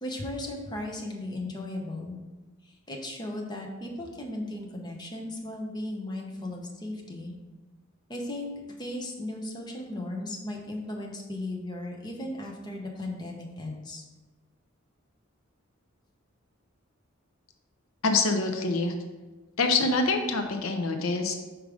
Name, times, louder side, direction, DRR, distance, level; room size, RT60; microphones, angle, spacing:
voice 1, 0.0-2.2 2.6-7.3 8.1-8.5 8.8-14.0, left 1 dB, 20° left, 0 dB, 0.9 m, -36 dB
voice 2, 18.0-18.9 19.6-21.3, left 3 dB, 80° left, 5 dB, 0.7 m, -25 dB
5.2 x 4.7 x 4.9 m, 1.2 s
head